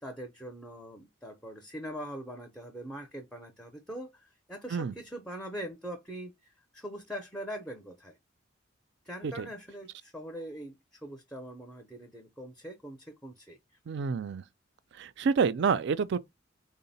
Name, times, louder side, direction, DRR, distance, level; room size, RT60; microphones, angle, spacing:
voice 1, 0.0-8.2 9.0-13.6, equal, 5° left, 0.5 m, -42 dB
voice 2, 13.9-14.4 15.0-16.2, right 5 dB, 60° right, 0.3 m, -28 dB
3.8 x 2.0 x 4.0 m
head